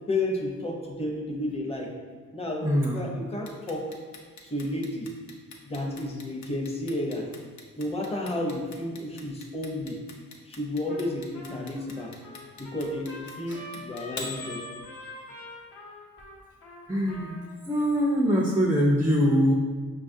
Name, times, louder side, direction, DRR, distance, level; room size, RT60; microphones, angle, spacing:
voice 1, 0.1-1.9 2.3-3.9 4.4-5.1 5.6-7.3 7.8-10.0 10.5-12.1 12.6-14.6 16.9-17.3, left 1 dB, 20° left, 0 dB, 0.7 m, -32 dB
voice 2, 2.6-3.0 13.5-13.6 16.9-17.3 17.7-19.5, equal, 10° right, -2 dB, 0.3 m, -23 dB
Clock, 3.5-15.4, left 4 dB, 65° left, 0.6 m, -43 dB
Trumpet, 10.9-11.1 11.3-17.6, left 1 dB, 80° left, 0.9 m, -44 dB
5.5 x 2.4 x 2.6 m, 1.5 s
cardioid pair, 100°, 31 cm